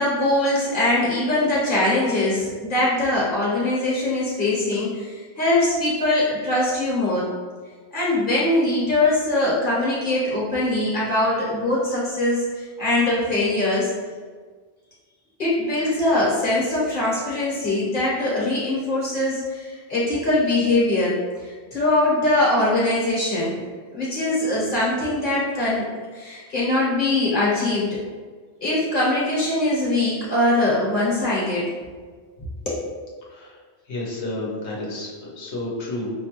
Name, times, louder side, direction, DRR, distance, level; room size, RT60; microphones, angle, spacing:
voice 1, 0.0-7.3 7.9-13.9 15.4-21.1 21.4-23.6 23.9-25.9 26.1-28.0 28.6-31.7 32.6-32.8, left 2 dB, 50° left, -7 dB, 1.1 m, -22 dB
voice 2, 33.9-36.1, left 1 dB, 80° left, -4 dB, 1.1 m, -31 dB
5.2 x 2.2 x 2.9 m, 1.5 s
omnidirectional pair, 1.1 m